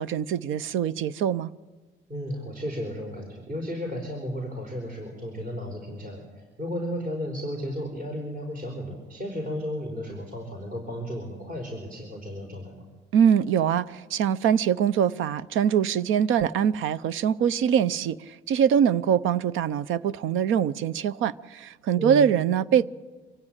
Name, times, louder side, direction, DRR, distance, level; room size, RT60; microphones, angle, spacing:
voice 1, 0.0-1.5 13.1-22.8, right 8 dB, 85° right, 0.7 m, -23 dB
voice 2, 2.1-12.8 21.9-22.3, equal, 45° right, 4.6 m, -34 dB
25.0 x 16.5 x 8.9 m
cardioid pair, 90°, 20 cm